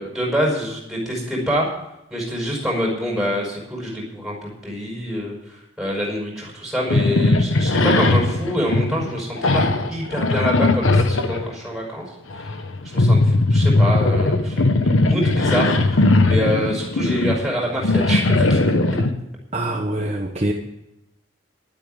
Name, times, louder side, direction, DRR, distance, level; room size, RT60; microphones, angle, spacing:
voice 1, 0.0-1.7 2.1-12.1 12.3-12.6 12.8-18.6, equal, ahead, -2 dB, 5.1 m, -26 dB
sound 1, 6.9-11.5 12.3-19.1, left 2 dB, 85° left, 1.1 m, -18 dB
voice 2, 19.5-20.5, right 1 dB, 30° right, 0 dB, 1.1 m, -24 dB
11.5 x 9.2 x 8.8 m, 0.89 s
head